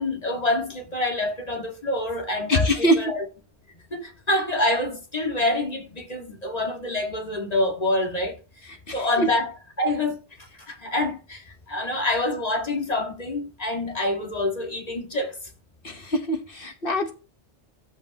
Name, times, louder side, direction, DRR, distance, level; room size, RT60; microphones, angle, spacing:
voice 1, 0.0-3.3 3.9-8.4 8.9-9.5 9.8-15.4, left 2 dB, 35° left, 2.0 m, -26 dB
voice 2, 2.5-3.1 8.9-9.3 15.8-17.1, equal, 50° left, 1.3 m, -23 dB
14.0 x 5.3 x 2.9 m
omnidirectional pair, 1.2 m